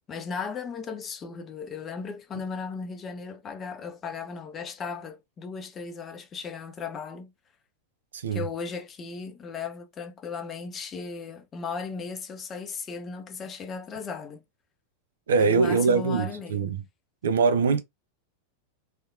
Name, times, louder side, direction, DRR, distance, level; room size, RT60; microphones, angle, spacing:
voice 1, 0.1-7.3 8.3-14.4 15.4-16.7, left 5 dB, 25° left, 0.5 m, -36 dB
voice 2, 8.1-8.5 15.3-16.8 17.2-17.8, right 4 dB, 65° right, 0.4 m, -23 dB
2.7 x 2.1 x 2.4 m
figure-of-eight pair, 90°, 0 cm